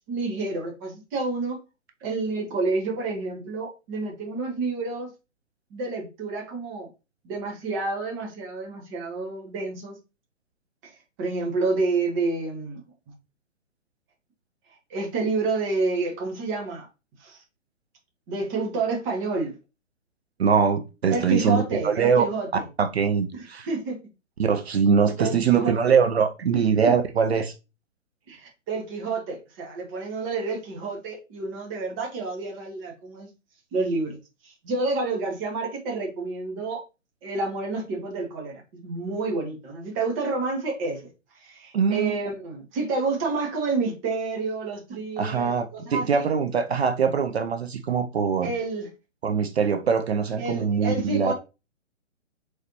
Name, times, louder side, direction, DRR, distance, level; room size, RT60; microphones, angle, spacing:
voice 1, 0.1-1.6 2.0-5.1 5.7-6.9 7.2-10.0 11.2-12.8 14.9-16.9 17.2-17.4 18.3-19.5 21.1-22.6 23.3-24.0 25.2-25.9 26.5-26.9 28.3-33.3 33.7-34.2 34.4-36.8 37.2-41.0 41.4-46.3 48.4-48.9 50.4-51.3, right 3 dB, 15° right, 0.8 m, -29 dB
voice 2, 20.4-22.2 22.8-23.7 24.4-27.5 41.7-42.1 45.2-48.5 49.2-51.3, right 6 dB, 55° right, 0.6 m, -22 dB
4.1 x 3.2 x 2.9 m
figure-of-eight pair, 130°, 38 cm